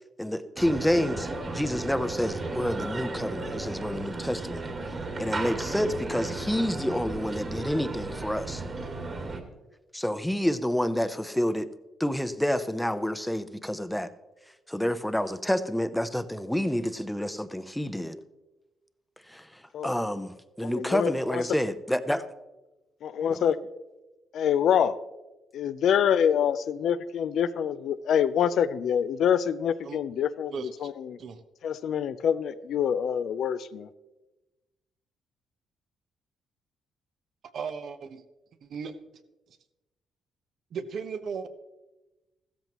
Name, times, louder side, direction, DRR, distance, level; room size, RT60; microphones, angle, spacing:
voice 1, 0.2-4.6 5.2-8.6 9.9-11.7 12.0-14.1 14.7-18.2 19.3-22.2 23.3-23.5, equal, 5° left, 12 dB, 0.7 m, -29 dB
sound 1, 0.6-9.4, right 2 dB, 40° right, 2.1 m, -34 dB
voice 2, 20.6-21.4 23.0-23.6 24.3-25.0 25.5-31.2 31.6-33.9, left 8 dB, 70° left, 13 dB, 0.5 m, -26 dB
voice 3, 37.5-38.2 38.6-39.0 40.7-41.5, right 6 dB, 65° right, 8 dB, 1.0 m, -35 dB
15.0 x 13.5 x 3.0 m, 1.1 s
cardioid pair, 90°, 0 cm